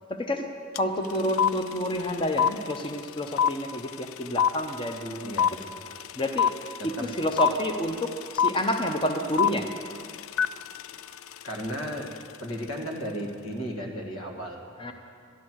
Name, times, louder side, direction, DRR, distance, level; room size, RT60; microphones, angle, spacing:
voice 1, 0.1-0.5 0.8-5.4 6.2-6.6 6.8-9.7 14.8-14.9, equal, 25° left, 5 dB, 0.7 m, -29 dB
sound 1, 0.8-0.9 1.0-12.2, left 8 dB, 70° left, 0.3 m, -26 dB
voice 2, 5.2-5.6 6.8-7.1 11.4-12.1 12.4-14.7, equal, 90° left, 1 dB, 2.0 m, -34 dB
13.0 x 11.5 x 6.2 m, 2.3 s
head